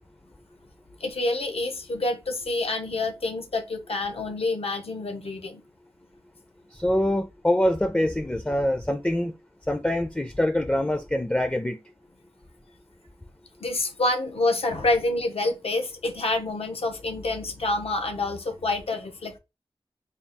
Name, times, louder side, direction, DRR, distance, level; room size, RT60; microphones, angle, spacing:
voice 1, 1.0-5.6 13.6-19.4, left 2 dB, 80° left, 0.8 m, -27 dB
voice 2, 6.7-9.3 9.7-11.8, left 1 dB, 10° left, 0.4 m, -24 dB
4.0 x 2.3 x 3.4 m
wide cardioid pair, 60°, 10 cm